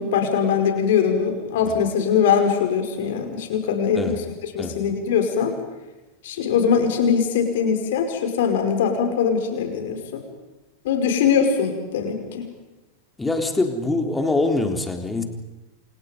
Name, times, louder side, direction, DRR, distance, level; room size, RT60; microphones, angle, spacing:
voice 1, 0.0-4.1 4.5-5.5 6.2-10.2 10.8-12.5, left 7 dB, 55° left, 5 dB, 5.5 m, -21 dB
voice 2, 13.2-15.2, left 2 dB, 10° left, 4 dB, 3.8 m, -24 dB
29.0 x 28.0 x 5.4 m, 1.1 s
figure-of-eight pair, 90°, 0 cm